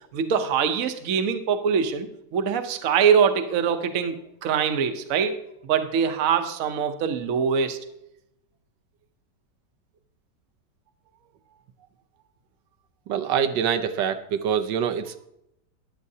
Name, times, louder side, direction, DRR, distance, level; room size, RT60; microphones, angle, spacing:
voice 1, 0.1-7.9, right 7 dB, 60° right, 8 dB, 1.1 m, -23 dB
voice 2, 13.1-15.3, right 8 dB, 85° right, 9 dB, 1.3 m, -25 dB
14.0 x 10.5 x 2.8 m, 0.82 s
omnidirectional pair, 1.8 m